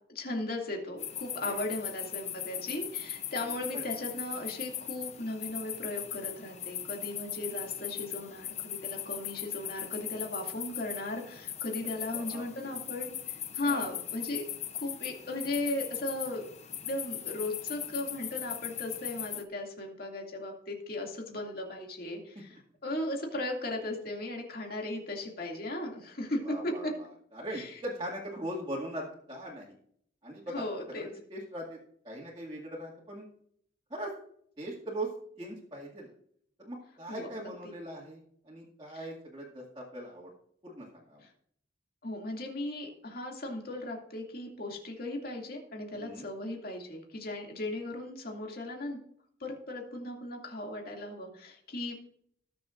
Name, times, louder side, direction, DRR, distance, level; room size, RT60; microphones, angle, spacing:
voice 1, 0.1-13.1 13.5-14.5 14.7-16.4 16.8-22.5 22.8-26.9 27.5-27.8 30.5-31.1 37.1-37.3 41.2-41.3 42.0-49.0 49.4-52.1, left 1 dB, 50° left, 1 dB, 2.5 m, -37 dB
sound 1, 1.0-19.4, left 10 dB, 35° left, 0.7 m, -39 dB
voice 2, 12.1-12.7 13.6-13.9 22.5-22.6 26.4-27.1 27.3-29.8 30.2-30.6 30.9-31.8 32.0-33.3 33.9-34.1 34.6-35.1 35.4-36.1 36.6-40.3 40.6-41.2 45.9-46.3, right 1 dB, 25° right, -6 dB, 2.1 m, -40 dB
20.0 x 6.9 x 2.6 m, 0.64 s
head